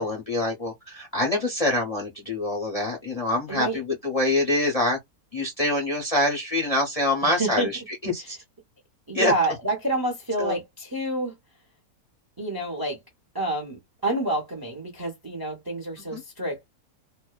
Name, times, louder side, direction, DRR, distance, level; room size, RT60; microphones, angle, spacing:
voice 1, 0.0-5.0 5.3-8.4 9.1-9.3 10.4-10.6 16.0-16.2, left 1 dB, 40° left, 0.5 m, -25 dB
voice 2, 3.5-3.8 7.2-7.7 9.1-11.4 12.4-13.0 13.3-16.6, right 2 dB, 30° right, 0.4 m, -28 dB
2.6 x 2.1 x 2.2 m
omnidirectional pair, 1.7 m